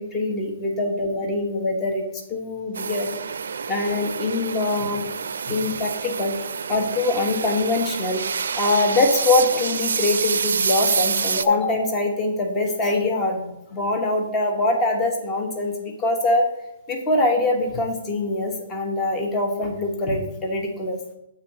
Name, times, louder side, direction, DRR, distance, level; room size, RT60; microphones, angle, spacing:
voice 1, 0.0-3.1 3.7-5.0 5.5-6.3 6.7-8.2 8.5-16.5 16.9-21.0, left 2 dB, 15° left, 1 dB, 1.2 m, -23 dB
sound 1, 2.7-11.4, right 6 dB, 85° right, 0.4 m, -27 dB
8.1 x 3.9 x 6.3 m, 0.85 s
hypercardioid pair, 160°, 0 cm